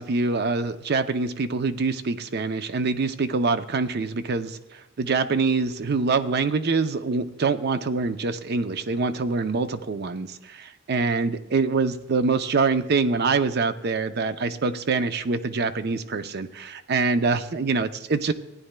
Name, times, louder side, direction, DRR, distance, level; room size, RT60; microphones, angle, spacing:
voice 1, 0.0-4.6 5.0-18.3, right 4 dB, 55° right, 11 dB, 0.5 m, -25 dB
16.0 x 9.9 x 2.2 m, 1.1 s
head